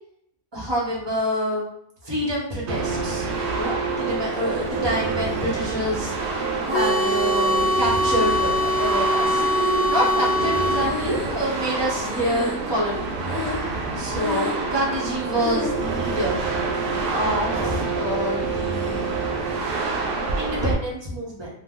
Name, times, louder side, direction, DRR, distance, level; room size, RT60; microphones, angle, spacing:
voice 1, 0.5-1.7 2.0-3.3 3.5-13.1 14.0-16.4 17.1-19.2 20.0-21.5, equal, 25° right, -5 dB, 0.8 m, -27 dB
sound 1, 2.7-20.7, right 4 dB, 70° right, 0.5 m, -27 dB
sound 2, 6.7-10.9, equal, 55° left, 0.7 m, -22 dB
Breathing, 8.0-8.7 9.3-11.8 12.0-12.8 13.2-13.8 14.1-14.7 15.3-15.8, left 2 dB, 25° left, 1.1 m, -31 dB
2.5 x 2.1 x 3.5 m, 0.74 s
omnidirectional pair, 1.4 m